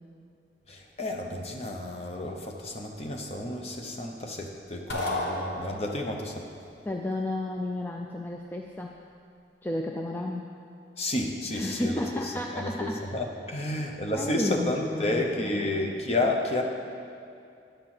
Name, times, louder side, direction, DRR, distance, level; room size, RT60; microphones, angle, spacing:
voice 1, 0.7-6.5 11.0-16.6, left 1 dB, 35° left, 2 dB, 0.8 m, -31 dB
sound 1, 4.9-6.2, left 1 dB, 70° left, 1.2 m, -31 dB
voice 2, 6.9-9.0 9.6-10.6 11.5-13.0 13.5-13.7 14.1-15.9, left 1 dB, 10° left, 1 dB, 0.3 m, -33 dB
10.0 x 4.5 x 7.6 m, 2.5 s
head